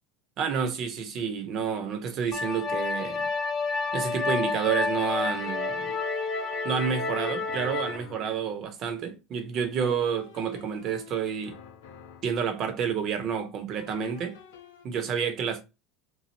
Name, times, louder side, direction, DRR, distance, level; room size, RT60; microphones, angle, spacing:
voice 1, 0.4-3.3 3.9-5.9 6.6-11.6 12.2-14.4 14.8-15.6, right 7 dB, 50° right, 0.9 m, -29 dB
sound 1, 2.3-8.0, left 4 dB, 35° left, 0.7 m, -29 dB
sound 2, 5.8-8.5 9.8-12.5 13.8-14.9, left 9 dB, 70° left, 0.6 m, -49 dB
3.1 x 2.3 x 3.9 m
hypercardioid pair, 80°, 0 cm